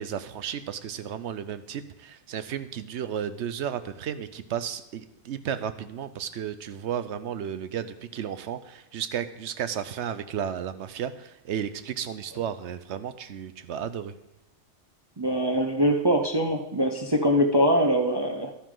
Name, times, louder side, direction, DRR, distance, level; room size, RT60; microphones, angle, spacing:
voice 1, 0.0-14.1, right 9 dB, 70° right, 12 dB, 0.9 m, -33 dB
voice 2, 15.2-18.5, equal, 25° right, 2 dB, 0.7 m, -23 dB
12.0 x 9.7 x 3.8 m, 0.89 s
omnidirectional pair, 1.2 m